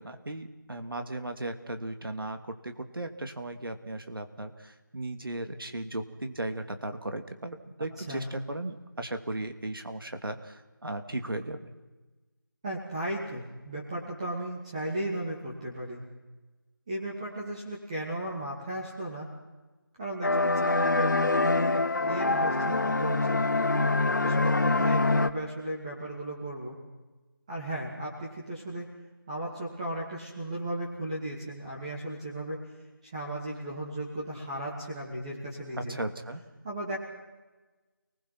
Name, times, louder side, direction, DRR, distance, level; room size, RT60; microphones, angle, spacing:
voice 1, 0.0-11.7 35.8-36.4, right 1 dB, 70° right, 7 dB, 2.6 m, -36 dB
voice 2, 8.0-8.3 12.6-16.0 16.9-19.3 20.0-23.5 24.2-26.8 27.5-28.9 29.3-32.6 33.0-36.0 36.6-37.0, right 1 dB, 15° right, -5 dB, 2.4 m, -35 dB
sound 1, 20.2-25.3, left 2 dB, 55° left, 1.2 m, -25 dB
29.5 x 20.0 x 6.1 m, 1.2 s
figure-of-eight pair, 170°, 12 cm